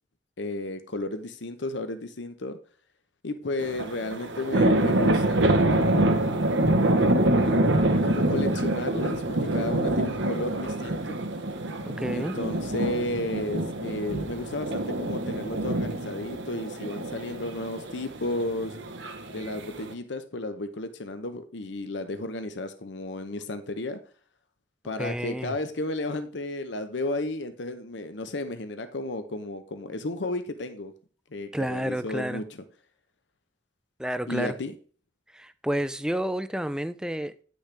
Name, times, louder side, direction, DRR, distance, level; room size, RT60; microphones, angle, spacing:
voice 1, 0.4-2.6 3.2-6.4 8.0-9.2 9.5-11.2 12.1-18.7 19.3-24.0 24.8-30.9 31.3-32.6 34.3-34.7, left 2 dB, 70° left, 0.8 m, -33 dB
sound 1, 3.6-19.9, right 1 dB, 75° right, 1.0 m, -26 dB
voice 2, 11.9-12.3 25.0-25.5 31.5-32.4 34.0-34.5 35.3-37.3, equal, 5° right, 0.4 m, -30 dB
9.8 x 6.3 x 3.4 m
head